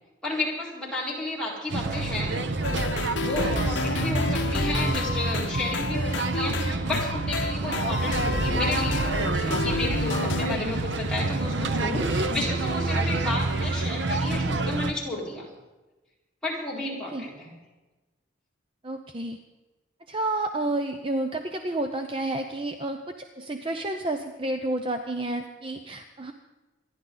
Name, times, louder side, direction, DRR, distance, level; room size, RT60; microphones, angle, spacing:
voice 1, 0.2-2.3 3.2-15.4 16.4-17.5, left 2 dB, 5° left, -7 dB, 4.5 m, -32 dB
sound 1, 1.7-14.9, right 3 dB, 70° right, 0.9 m, -28 dB
sound 2, 2.6-10.6, left 3 dB, 75° left, 0.8 m, -30 dB
voice 2, 18.8-19.4 20.1-26.3, right 2 dB, 25° right, 5 dB, 0.7 m, -30 dB
26.5 x 11.0 x 4.0 m, 1.1 s
head